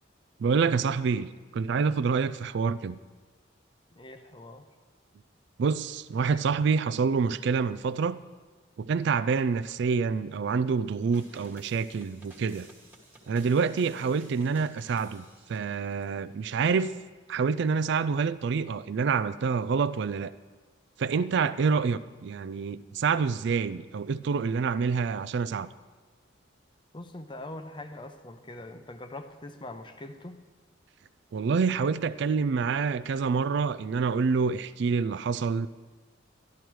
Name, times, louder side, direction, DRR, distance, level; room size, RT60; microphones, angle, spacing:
voice 1, 0.4-1.3 1.5-3.0 5.6-8.2 8.8-12.7 13.3-16.9 17.3-20.3 21.0-25.7 31.3-35.7, right 5 dB, 60° right, 0.4 m, -27 dB
voice 2, 3.9-4.6 26.9-30.4, left 2 dB, 25° left, 0.7 m, -42 dB
sound 1, 11.1-16.0, right 1 dB, 10° right, 1.4 m, -54 dB
12.5 x 11.5 x 4.6 m
head